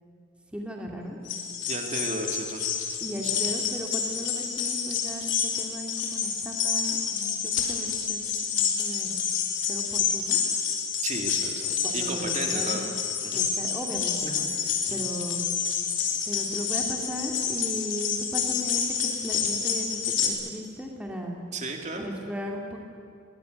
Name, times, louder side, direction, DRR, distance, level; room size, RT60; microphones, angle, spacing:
voice 1, 0.5-1.2 3.0-8.2 8.5-9.1 9.7-10.4 11.8-12.8 13.3-14.5 14.9-15.5 16.3-21.4 22.0-22.8, equal, 5° right, 0 dB, 2.4 m, -36 dB
sound 1, 1.3-20.3, left 7 dB, 70° left, 3.6 m, -28 dB
voice 2, 1.7-2.9 3.2-3.3 11.0-12.9 13.2-13.4 14.9-15.1 21.5-22.1, right 2 dB, 35° right, 3 dB, 2.5 m, -34 dB
21.5 x 19.5 x 9.4 m, 2.3 s
head